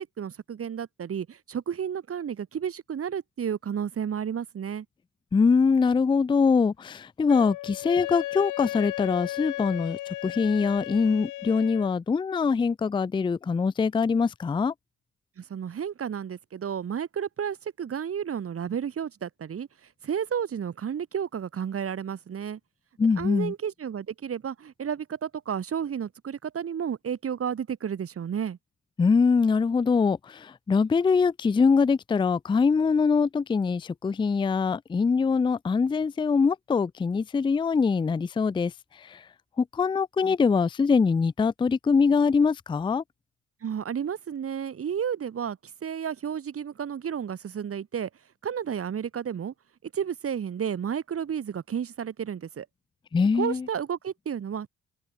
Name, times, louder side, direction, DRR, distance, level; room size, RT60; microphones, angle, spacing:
voice 1, 0.0-4.9 15.4-19.7 20.0-22.6 23.2-28.6 43.6-48.1 48.4-49.5 49.8-52.7 53.3-54.7, right 8 dB, 50° right, 2.4 m, -32 dB
voice 2, 5.3-14.7 23.0-23.5 29.0-39.3 39.6-43.0 53.1-53.7, left 5 dB, 15° left, 0.4 m, -23 dB
Wind instrument woodwind instrument, 7.3-11.9, left 16 dB, 80° left, 0.8 m, -35 dB
cardioid pair, 90°, 30 cm